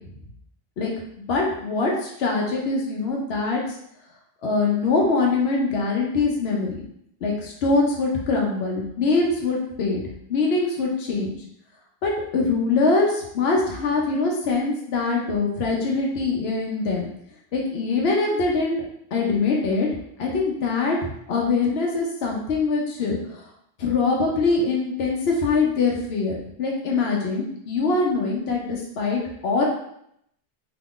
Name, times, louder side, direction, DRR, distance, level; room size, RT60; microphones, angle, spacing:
voice 1, 1.2-3.6 4.4-6.8 7.2-10.0 10.3-11.4 12.0-17.1 17.5-18.8 19.1-19.9 20.2-23.2 23.8-29.6, left 3 dB, 85° left, -1 dB, 0.9 m, -23 dB
2.9 x 2.4 x 3.6 m, 0.72 s
omnidirectional pair, 1.0 m